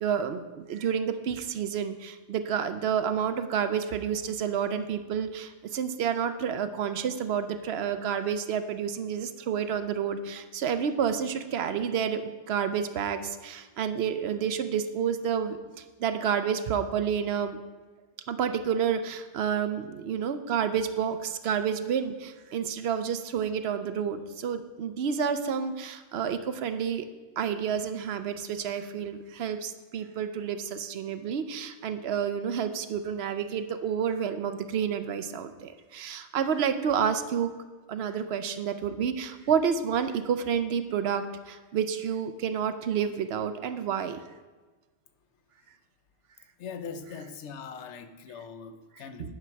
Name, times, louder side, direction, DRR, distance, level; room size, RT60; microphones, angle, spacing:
voice 1, 0.0-15.6 16.0-17.6 18.3-27.1 27.4-37.5 37.9-44.2 49.2-49.3, right 7 dB, 70° right, 10 dB, 0.8 m, -29 dB
voice 2, 46.6-49.3, left 6 dB, 85° left, 9 dB, 1.0 m, -41 dB
8.8 x 5.9 x 4.5 m, 1.3 s
omnidirectional pair, 1.1 m